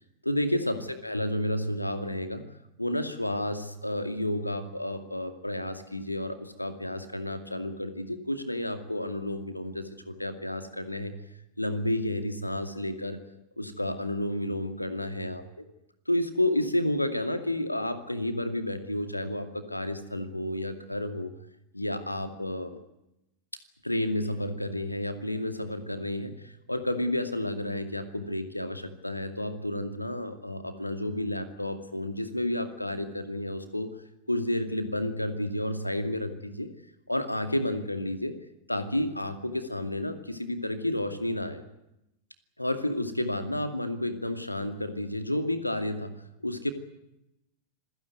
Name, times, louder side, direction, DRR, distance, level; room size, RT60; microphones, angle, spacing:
voice 1, 0.2-11.2 11.6-13.2 13.6-15.4 16.1-21.3 21.7-22.8 23.8-33.9 34.3-36.7 37.1-38.3 38.7-41.6 42.6-46.1 46.4-46.7, left 1 dB, 85° left, 8 dB, 2.4 m, -31 dB
26.5 x 16.5 x 9.5 m, 0.88 s
figure-of-eight pair, 90°, 0 cm